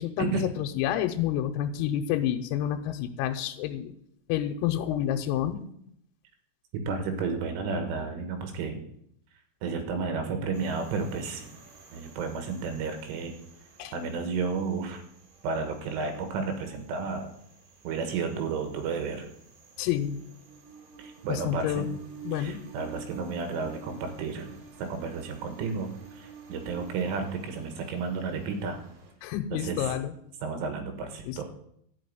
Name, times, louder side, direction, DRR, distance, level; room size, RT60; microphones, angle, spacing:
voice 1, 0.0-3.9 4.3-5.6 13.8-13.9 19.8-20.2 21.3-22.0 22.2-22.6 29.2-30.1 31.3-31.4, left 11 dB, 85° left, 5 dB, 3.5 m, -29 dB
voice 2, 6.7-8.9 9.6-11.6 11.9-13.3 13.9-15.0 15.4-17.3 17.9-19.3 21.0-21.9 22.3-28.8 29.5-30.0 30.4-31.4, right 4 dB, 75° right, 6 dB, 3.8 m, -32 dB
sound 1, 10.5-29.1, right 5 dB, 60° right, 4.2 m, -50 dB
13.5 x 6.1 x 9.2 m, 0.71 s
omnidirectional pair, 6.0 m